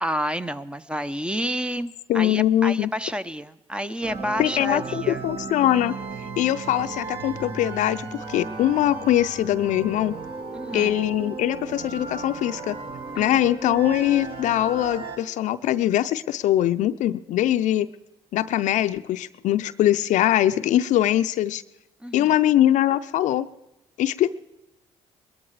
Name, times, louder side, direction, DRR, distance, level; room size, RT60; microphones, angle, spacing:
voice 1, 0.0-5.3 10.5-11.0 13.1-13.4 22.0-22.3, equal, 10° right, 12 dB, 0.7 m, -30 dB
voice 2, 2.1-2.9 4.4-6.0 6.4-10.1 10.7-12.8 13.2-17.9 18.3-21.6 22.1-23.5 24.0-24.3, left 12 dB, 70° left, 12 dB, 0.6 m, -22 dB
sound 1, 4.0-15.2, right 3 dB, 45° right, 2.0 m, -35 dB
21.5 x 13.5 x 4.8 m, 0.93 s
hypercardioid pair, 60°, 13 cm